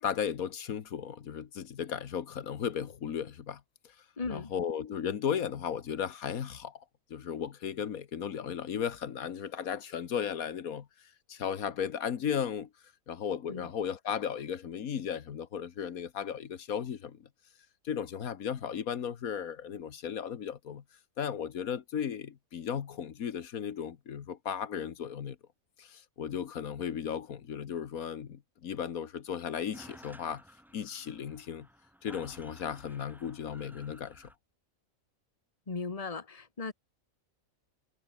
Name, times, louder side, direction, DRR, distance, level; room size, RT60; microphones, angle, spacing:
voice 1, 0.0-4.0 4.3-6.8 7.1-10.9 11.3-12.7 13.1-17.2 17.9-20.8 21.2-25.4 25.8-30.4 30.7-31.7 32.0-34.3, left 8 dB, 85° left, 1.7 m, -35 dB
voice 2, 4.2-4.5 13.5-13.7 35.7-36.7, left 4 dB, 25° left, 1.6 m, -37 dB
sound 1, 29.3-29.4 29.5-34.4, equal, ahead, 1.9 m, -54 dB
omnidirectional pair, 1.5 m